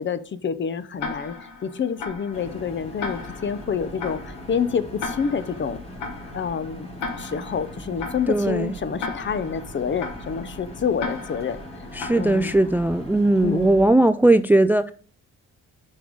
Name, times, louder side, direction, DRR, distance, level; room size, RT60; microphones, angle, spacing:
voice 1, 0.0-1.3 1.6-5.8 6.3-6.9 7.2-11.6 12.2-12.5 13.4-13.8, left 6 dB, 40° left, 0.7 m, -27 dB
Tick-tock, 1.0-12.8, left 4 dB, 90° left, 1.6 m, -37 dB
sound 1, 2.3-13.9, equal, 20° left, 2.7 m, -40 dB
voice 2, 8.3-8.7 12.0-14.9, right 2 dB, 5° right, 0.3 m, -18 dB
5.8 x 5.3 x 5.1 m
cardioid pair, 90°, 30 cm